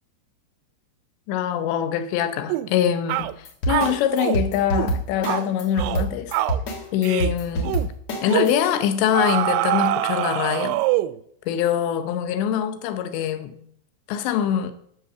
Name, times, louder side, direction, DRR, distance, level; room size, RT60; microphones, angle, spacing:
voice 1, 1.3-6.3 6.9-7.8 8.2-10.8 11.5-13.6 14.1-14.7, left 9 dB, 85° left, 3.1 m, -24 dB
sound 1, 2.5-2.7 3.1-3.3 3.7-4.4 4.7-5.0 5.2-5.5 5.8-6.1 6.3-6.6 7.0-7.3 7.6-7.9 8.3-8.5 9.1-11.2, right 15 dB, 80° right, 2.5 m, -24 dB
sound 2, 3.2-8.5, right 1 dB, 50° left, 2.5 m, -26 dB
10.5 x 6.6 x 6.6 m
omnidirectional pair, 5.0 m